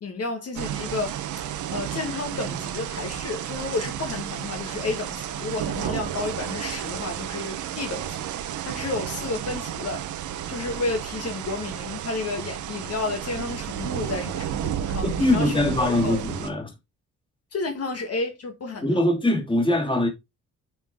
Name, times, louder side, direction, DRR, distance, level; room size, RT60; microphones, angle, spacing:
voice 1, 0.0-1.2 1.7-8.3 8.6-10.1 10.5-16.2 17.5-19.0, left 3 dB, 55° left, 1.9 m, -31 dB
sound 1, 0.5-16.5, right 10 dB, 75° right, 1.1 m, -32 dB
voice 2, 15.0-16.7 18.8-20.1, left 1 dB, 15° left, 2.6 m, -22 dB
8.9 x 4.5 x 3.7 m
cardioid pair, 90°, 30 cm